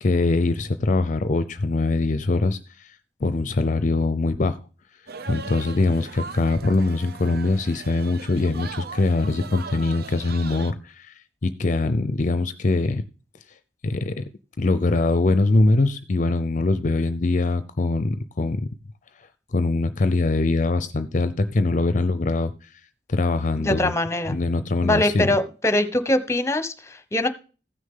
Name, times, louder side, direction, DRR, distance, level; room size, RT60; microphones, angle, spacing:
voice 1, 0.0-2.9 3.2-4.6 5.3-11.1 11.4-13.0 13.8-14.2 14.6-18.7 19.5-22.7 23.1-23.9 24.3-25.4, left 3 dB, 45° left, 12 dB, 0.6 m, -22 dB
sound 1, 5.1-10.7, right 4 dB, 60° right, 0.7 m, -38 dB
voice 2, 23.6-24.4 24.8-27.3, left 1 dB, 15° left, 10 dB, 1.0 m, -23 dB
15.0 x 6.4 x 3.7 m, 0.36 s
head